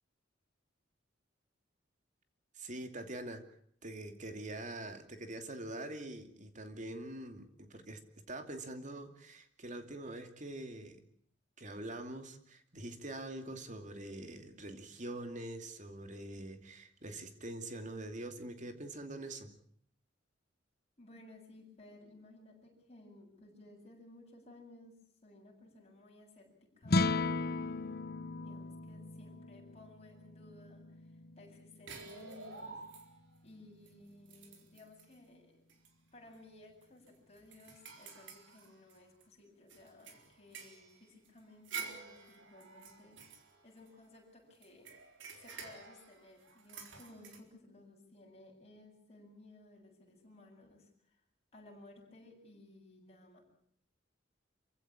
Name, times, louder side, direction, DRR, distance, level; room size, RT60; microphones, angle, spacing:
voice 1, 2.6-3.5 3.8-11.0 11.6-19.5, right 1 dB, 40° right, 7 dB, 2.6 m, -44 dB
voice 2, 21.0-24.9 25.2-28.0 28.4-32.8 33.4-35.6 36.1-43.2 43.6-44.9 45.3-51.2 51.5-53.4, left 2 dB, 35° left, 0 dB, 7.9 m, -57 dB
sound 1, 26.8-33.2, left 3 dB, 55° left, 1.0 m, -37 dB
sound 2, 31.9-33.4 33.9-34.0 34.3-35.1 35.7-35.9 36.3-36.4 36.8-39.2 39.7-44.2 44.6-47.4, right 5 dB, 75° right, 4.0 m, -49 dB
27.0 x 16.0 x 8.8 m, 0.65 s
head